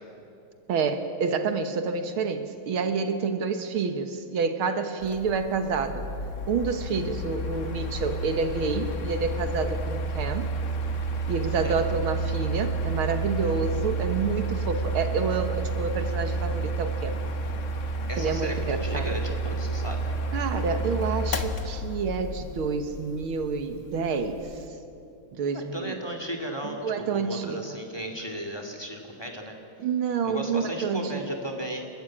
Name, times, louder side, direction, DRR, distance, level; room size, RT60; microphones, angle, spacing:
voice 1, 0.7-6.0 6.5-10.5 11.3-17.2 18.2-19.2 20.3-24.5 25.3-25.9 26.6-27.8 29.8-31.2, right 5 dB, 80° right, 8 dB, 2.1 m, -28 dB
Mechanical fan, 5.0-24.7, right 2 dB, 45° left, 1.2 m, -31 dB
voice 2, 18.1-20.1 25.5-26.8 27.1-29.6 30.2-31.9, right 1 dB, 10° left, 3 dB, 2.2 m, -35 dB
29.5 x 14.0 x 8.6 m, 2.6 s
omnidirectional pair, 2.3 m